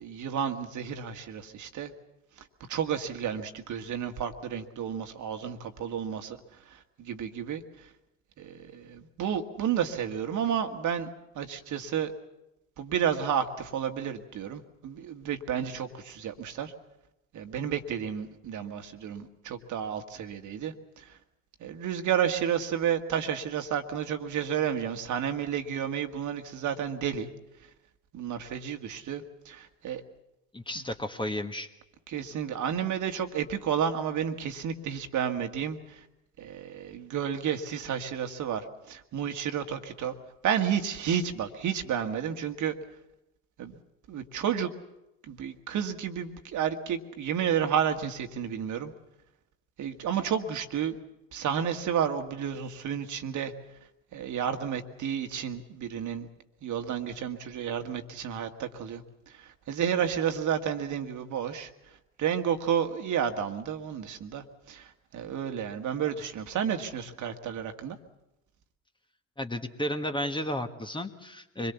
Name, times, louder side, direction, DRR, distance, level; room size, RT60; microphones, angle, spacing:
voice 1, 0.0-1.9 2.4-6.4 6.7-7.9 8.4-11.1 11.4-12.1 12.8-16.7 17.3-21.2 21.6-27.3 28.1-30.0 32.1-36.1 36.4-40.1 40.4-42.8 43.6-43.8 44.1-44.7 45.2-48.9 49.8-51.0 51.3-53.5 54.1-56.3 56.6-61.7 62.2-68.0, right 8 dB, 45° right, 7 dB, 1.9 m, -31 dB
voice 2, 30.5-31.7 69.4-71.7, left 1 dB, 10° left, 6 dB, 1.5 m, -33 dB
25.0 x 22.0 x 7.1 m, 0.93 s
hypercardioid pair, 65°, 41 cm